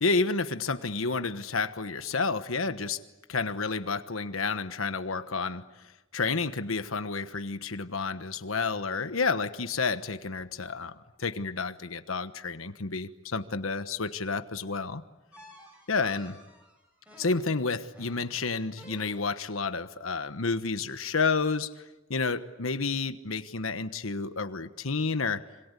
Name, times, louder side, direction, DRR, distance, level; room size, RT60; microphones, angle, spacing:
voice 1, 0.0-3.0 3.3-5.7 6.1-15.0 15.9-16.4 17.2-21.7 22.1-25.4, left 4 dB, 85° left, 1.3 m, -30 dB
sound 1, 15.3-19.6, equal, 5° right, 7.3 m, -53 dB
27.0 x 26.0 x 8.3 m
head